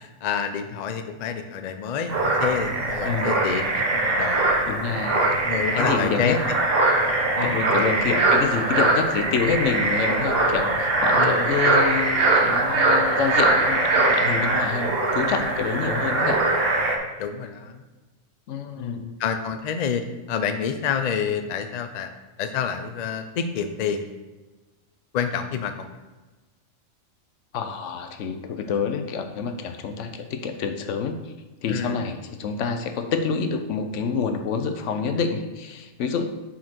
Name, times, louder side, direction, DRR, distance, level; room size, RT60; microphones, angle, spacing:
voice 1, 0.0-4.6 5.4-6.6 7.3-8.2 11.2-11.5 17.2-17.8 18.8-22.1 22.4-24.1 25.1-25.9 31.7-32.0, left 7 dB, 90° left, 8 dB, 0.3 m, -28 dB
sound 1, 2.1-17.0, right 2 dB, 50° right, 1.0 m, -22 dB
voice 2, 4.7-5.3 5.7-6.4 7.4-16.4 18.5-19.1 27.5-31.3 31.6-36.3, left 5 dB, 65° left, 7 dB, 0.9 m, -27 dB
6.2 x 4.3 x 4.4 m, 1.2 s
omnidirectional pair, 1.4 m